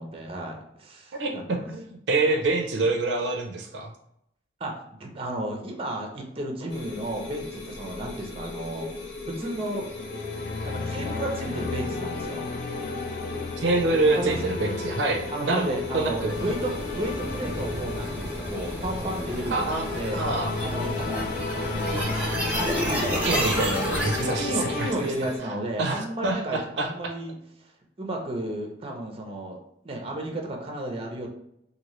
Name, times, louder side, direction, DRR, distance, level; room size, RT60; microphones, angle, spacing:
voice 1, 0.0-1.7 2.2-2.3 4.6-8.9 9.2-9.9 10.6-12.5 14.0-14.5 15.3-20.2 20.6-22.2 22.9-23.5 24.2-27.7 28.0-29.6 29.8-31.3, right 1 dB, 30° right, 1 dB, 0.6 m, -33 dB
voice 2, 1.2-3.9 13.6-15.7 15.9-16.3 19.5-19.8 20.1-20.5 23.2-25.1 25.8-27.1, right 3 dB, 80° right, 3 dB, 0.5 m, -26 dB
sound 1, 6.7-25.4, left 4 dB, 70° left, 0.8 m, -38 dB
sound 2, 9.5-24.9, left 3 dB, 50° left, 0.4 m, -34 dB
sound 3, 16.3-24.3, equal, 10° right, 0.9 m, -31 dB
2.9 x 2.6 x 3.0 m, 0.77 s
head